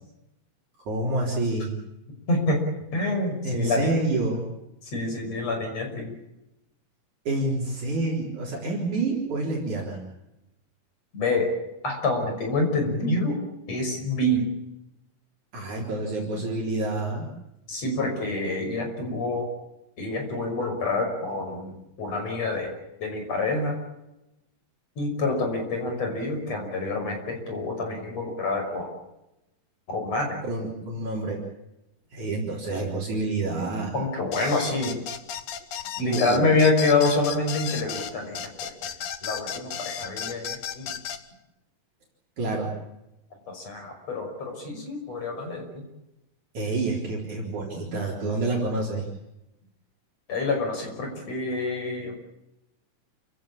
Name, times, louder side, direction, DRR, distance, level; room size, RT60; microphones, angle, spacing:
voice 1, 0.9-1.7 3.4-4.5 7.3-10.0 15.5-17.3 30.4-31.4 32.1-33.9 36.0-36.5 42.4-42.7 46.5-49.1, right 2 dB, 55° right, -3 dB, 5.3 m, -28 dB
voice 2, 2.3-2.6 2.9-3.9 4.9-6.1 11.1-11.5 11.8-13.4 13.7-14.5 17.7-19.5 20.0-22.7 23.0-23.8 25.0-28.9 29.9-30.4 33.9-35.0 36.0-38.7 39.2-40.9 43.5-45.8 50.3-52.1, left 2 dB, 45° left, 3 dB, 6.9 m, -27 dB
sound 1, 34.3-41.2, left 8 dB, 65° left, 2.7 m, -34 dB
28.5 x 17.0 x 8.6 m, 0.92 s
omnidirectional pair, 4.0 m